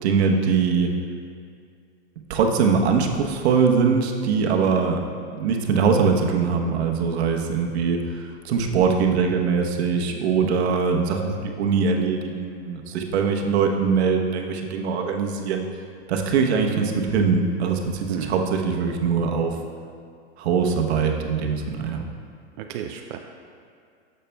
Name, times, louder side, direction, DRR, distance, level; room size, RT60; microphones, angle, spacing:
voice 1, 0.0-0.9 2.3-5.0 5.3-15.6 16.1-19.5 20.4-22.0, right 5 dB, 70° right, 2 dB, 1.0 m, -22 dB
voice 2, 18.1-18.4 22.6-23.2, right 9 dB, 50° right, 3 dB, 0.5 m, -32 dB
12.0 x 6.6 x 2.2 m, 2.3 s
hypercardioid pair, 140°, 34 cm